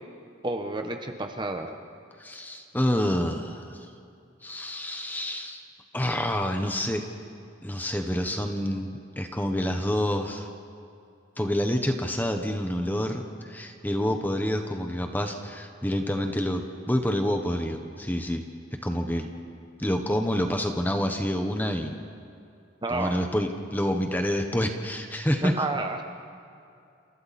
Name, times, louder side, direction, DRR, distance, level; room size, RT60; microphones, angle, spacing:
voice 1, 0.4-1.7 22.8-23.1 25.4-26.0, right 2 dB, 25° right, 5 dB, 1.2 m, -30 dB
voice 2, 2.2-3.8 4.4-5.6 5.9-7.0 7.6-10.5 11.4-18.4 18.7-19.3 19.8-22.0 22.9-25.6, equal, 10° left, 4 dB, 1.2 m, -28 dB
28.5 x 28.5 x 4.3 m, 2.4 s
head